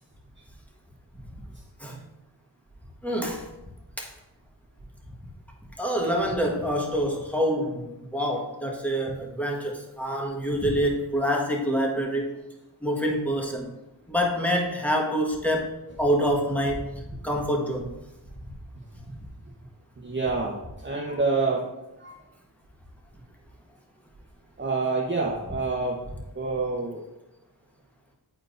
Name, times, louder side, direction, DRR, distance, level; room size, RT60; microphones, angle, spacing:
voice 1, 3.0-3.4 4.0-4.1 5.8-12.4 12.8-13.7 14.1-15.7 16.0-16.9 17.2-17.9, equal, 5° left, -1 dB, 1.4 m, -26 dB
voice 2, 20.0-21.7 22.0-22.2 24.6-26.0 26.3-27.1, right 3 dB, 25° right, -3 dB, 0.9 m, -27 dB
9.0 x 4.4 x 2.6 m, 0.95 s
cardioid pair, 40°, 42 cm